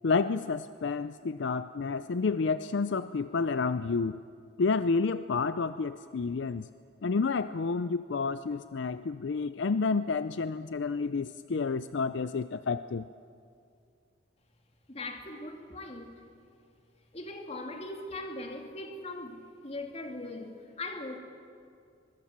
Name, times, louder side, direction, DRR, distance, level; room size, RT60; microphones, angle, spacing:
voice 1, 0.0-4.2 4.6-6.7 7.0-13.1, left 4 dB, 65° left, 13 dB, 0.5 m, -30 dB
voice 2, 14.9-16.2 17.1-21.2, left 2 dB, 35° left, 3 dB, 2.5 m, -40 dB
23.5 x 21.0 x 7.3 m, 2.4 s
head